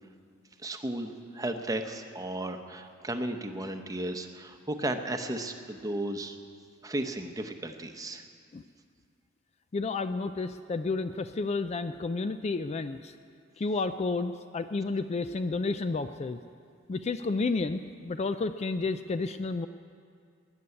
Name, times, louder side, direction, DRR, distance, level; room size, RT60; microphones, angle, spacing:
voice 1, 0.6-6.4 6.8-8.2, right 1 dB, 15° right, 6 dB, 0.8 m, -34 dB
voice 2, 9.7-13.2 13.6-16.4 16.9-19.7, left 3 dB, 30° left, 10 dB, 0.4 m, -31 dB
20.0 x 6.9 x 9.7 m, 2.2 s
head